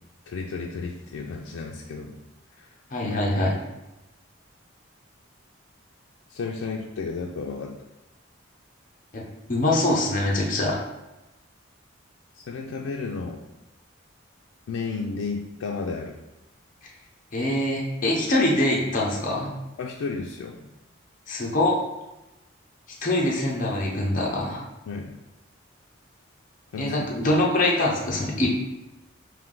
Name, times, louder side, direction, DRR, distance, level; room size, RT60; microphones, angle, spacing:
voice 1, 0.3-2.2 2.6-2.7 3.0-3.2 3.5-3.6 6.3-7.7 12.4-13.4 14.7-16.2 19.8-20.6 24.9-25.1 26.7-27.0, left 4 dB, 85° left, 0 dB, 0.4 m, -32 dB
voice 2, 2.9-3.5 9.1-9.2 9.5-10.8 17.3-19.5 21.3-21.8 23.0-24.6 26.8-28.6, left 1 dB, 40° left, -3 dB, 0.7 m, -24 dB
3.4 x 2.6 x 3.7 m, 0.98 s
head